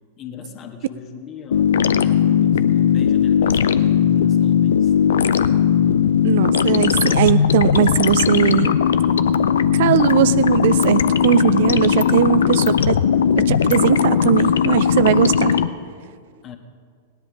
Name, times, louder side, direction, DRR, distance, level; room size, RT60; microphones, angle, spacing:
voice 1, 0.2-4.9 16.4-16.6, left 7 dB, 30° left, 5 dB, 1.5 m, -38 dB
sound 1, 1.5-15.7, left 8 dB, 65° left, 0.5 m, -17 dB
voice 2, 6.2-8.7 9.7-13.0 13.4-15.6, right 12 dB, 55° right, 15 dB, 0.4 m, -19 dB
18.0 x 10.5 x 5.1 m, 2.1 s
figure-of-eight pair, 95°, 0 cm